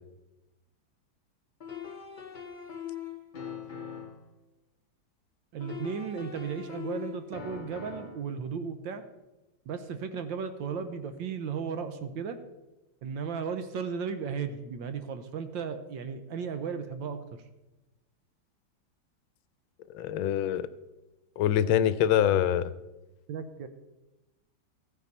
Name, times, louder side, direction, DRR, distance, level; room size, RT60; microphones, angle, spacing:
sound 1, 1.6-4.3 5.6-8.2, left 7 dB, 60° left, 0.5 m, -41 dB
voice 1, 5.5-9.0 9.7-12.4 13.0-17.4 23.3-23.7, right 6 dB, 70° right, 9 dB, 1.5 m, -35 dB
voice 2, 19.9-20.7 21.4-22.7, left 10 dB, 80° left, 15 dB, 1.4 m, -25 dB
15.0 x 9.5 x 4.1 m, 1.0 s
omnidirectional pair, 2.2 m